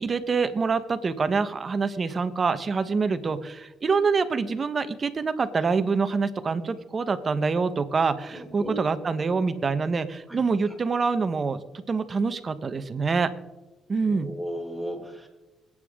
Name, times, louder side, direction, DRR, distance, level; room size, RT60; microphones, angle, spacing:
voice 1, 0.0-11.6 11.9-13.3 13.9-14.3, right 4 dB, 40° right, 10 dB, 1.2 m, -26 dB
voice 2, 8.3-8.8 10.3-10.4 14.0-15.3, equal, 5° left, -1 dB, 5.6 m, -35 dB
27.5 x 9.2 x 3.8 m, 1.1 s
cardioid pair, 90°, 0 cm